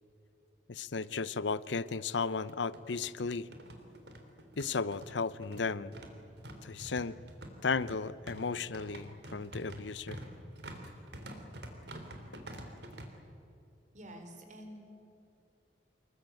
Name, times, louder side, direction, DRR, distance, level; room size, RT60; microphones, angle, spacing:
voice 1, 0.7-3.5 4.6-6.0 6.6-7.2 7.6-10.2, left 4 dB, 80° left, 17 dB, 0.7 m, -34 dB
sound 1, 1.0-1.1 1.4-1.5 2.3-13.1, right 1 dB, 65° right, 3.4 m, -47 dB
voice 2, 13.9-14.8, right 1 dB, 45° right, 5 dB, 4.0 m, -48 dB
26.0 x 22.0 x 9.2 m, 2.7 s
head